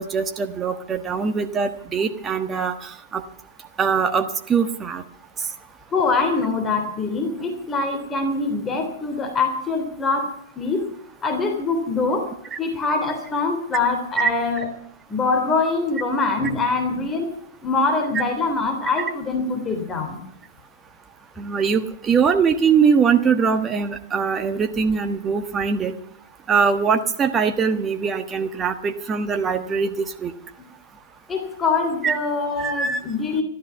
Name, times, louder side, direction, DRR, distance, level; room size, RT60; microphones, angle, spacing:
voice 1, 0.0-3.2 3.8-5.0 14.2-14.3 21.4-25.9 26.5-30.3 32.0-32.2 32.6-33.0, right 6 dB, 20° right, 6 dB, 1.3 m, -22 dB
voice 2, 5.9-10.3 10.6-10.9 11.2-12.3 12.6-14.7 15.1-17.3 17.6-20.2 31.3-33.4, left 3 dB, 20° left, 5 dB, 3.3 m, -23 dB
14.0 x 13.0 x 7.0 m, 0.67 s
figure-of-eight pair, 100°, 0 cm